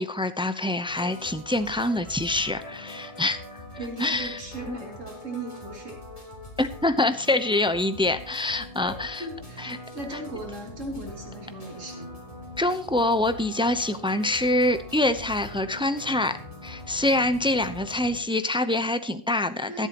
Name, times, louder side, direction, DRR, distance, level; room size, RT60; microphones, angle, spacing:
voice 1, 0.0-3.6 4.0-4.4 4.7-4.8 6.6-9.2 9.6-9.8 12.6-16.4 16.6-19.9, left 2 dB, 5° right, 11 dB, 0.5 m, -25 dB
sound 1, 0.9-18.2, left 1 dB, 25° left, 3.5 m, -42 dB
voice 2, 1.6-2.0 3.8-6.0 8.8-12.1 19.6-19.9, right 2 dB, 75° right, -1 dB, 3.4 m, -38 dB
24.0 x 8.2 x 3.0 m, 0.41 s
omnidirectional pair, 1.3 m